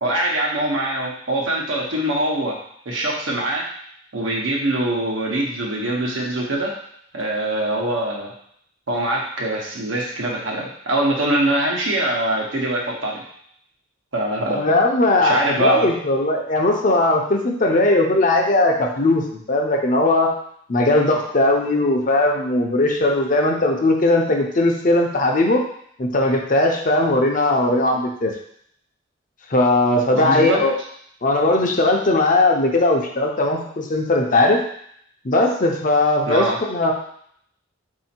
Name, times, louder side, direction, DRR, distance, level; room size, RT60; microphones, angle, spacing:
voice 1, 0.0-2.5 2.8-3.7 4.1-6.7 7.1-8.3 8.9-13.2 14.1-14.6 15.2-15.9 30.1-30.6 36.3-36.6, right 1 dB, 85° right, -2 dB, 1.0 m, -23 dB
voice 2, 14.5-20.3 20.7-25.6 26.0-28.3 29.5-30.8 31.2-34.6 35.2-36.9, left 2 dB, 40° left, 1 dB, 0.6 m, -18 dB
4.0 x 2.7 x 4.3 m, 0.67 s
head